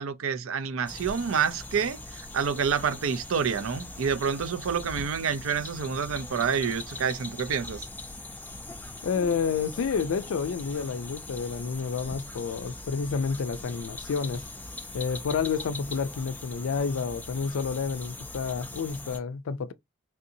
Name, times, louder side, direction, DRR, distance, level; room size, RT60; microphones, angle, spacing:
voice 1, 0.0-7.9, right 6 dB, 75° right, 0.5 m, -28 dB
sound 1, 0.9-19.2, left 2 dB, 10° left, 0.4 m, -41 dB
voice 2, 9.0-14.4 14.9-19.7, left 5 dB, 70° left, 0.4 m, -29 dB
3.5 x 2.6 x 2.6 m
head